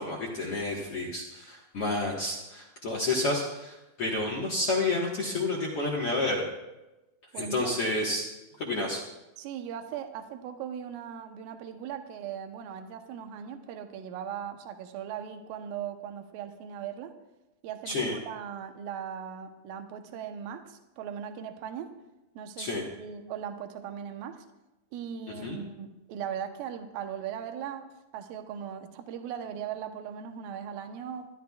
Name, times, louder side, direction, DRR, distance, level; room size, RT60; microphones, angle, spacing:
voice 1, 0.0-6.4 7.3-8.3 8.6-9.0 17.8-18.2 22.6-22.8 25.4-25.6, left 2 dB, 55° left, -3 dB, 1.7 m, -30 dB
voice 2, 7.3-7.8 9.4-17.1 17.6-21.9 22.3-24.5 24.9-31.3, right 8 dB, 75° right, 6 dB, 2.5 m, -39 dB
22.5 x 12.5 x 2.4 m, 1.0 s
omnidirectional pair, 4.6 m